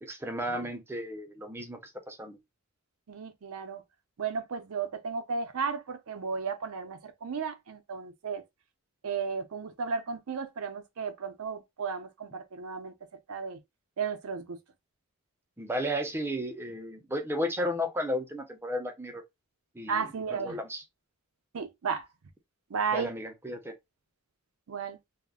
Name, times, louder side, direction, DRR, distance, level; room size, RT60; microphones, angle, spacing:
voice 1, 0.0-2.4 15.6-19.2 19.8-20.8 22.9-23.7, equal, 10° right, 0.4 m, -34 dB
voice 2, 3.1-3.8 4.2-8.4 9.0-12.9 13.3-13.6 14.0-14.6 19.9-20.6 21.5-22.1 22.7-23.1 24.7-25.0, right 5 dB, 70° right, 0.5 m, -34 dB
2.3 x 2.1 x 3.5 m
head